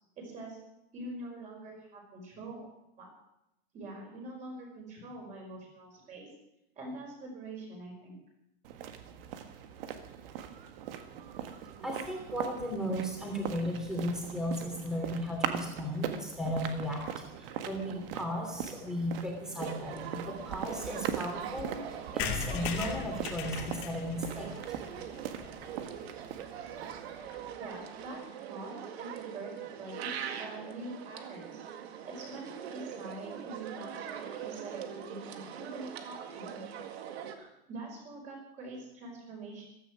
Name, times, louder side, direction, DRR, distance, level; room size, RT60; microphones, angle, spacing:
voice 1, 0.2-0.6 0.9-2.7 3.0-3.1 3.7-6.3 6.7-8.1 27.6-28.2 28.5-31.6 32.0-36.7 37.4-39.6, right 2 dB, 25° right, 0 dB, 5.2 m, -44 dB
sound 1, 8.6-27.2, right 9 dB, 65° right, 1.6 m, -41 dB
voice 2, 11.7-24.5, equal, ahead, 1 dB, 2.8 m, -35 dB
sound 2, 19.6-37.4, right 9 dB, 80° right, 2.0 m, -43 dB
sound 3, 22.2-25.9 26.3-26.4 26.6-26.7 26.9-27.0 27.2-27.5, left 7 dB, 40° left, 1.8 m, -38 dB
15.5 x 13.5 x 6.2 m, 0.85 s
supercardioid pair, 180°, 31 cm